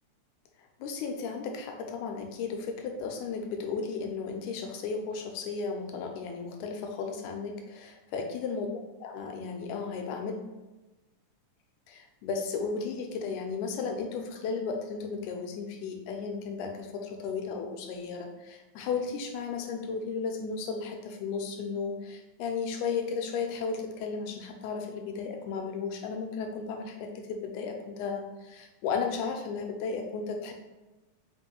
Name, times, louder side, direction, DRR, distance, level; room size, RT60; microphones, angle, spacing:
voice 1, 0.8-8.7 9.0-10.4 11.9-30.5, left 5 dB, 80° left, 4 dB, 2.0 m, -34 dB
5.0 x 2.6 x 2.8 m, 1.1 s
omnidirectional pair, 3.5 m